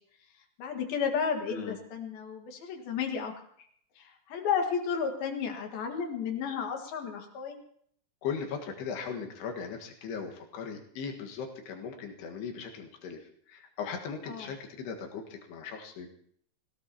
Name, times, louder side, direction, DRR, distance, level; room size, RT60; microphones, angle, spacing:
voice 1, 0.6-3.3 4.0-7.6 14.3-14.5, left 6 dB, 70° left, 4 dB, 3.5 m, -32 dB
voice 2, 8.2-16.1, left 6 dB, 90° left, 2 dB, 3.8 m, -38 dB
25.5 x 17.0 x 2.9 m, 0.64 s
omnidirectional pair, 4.6 m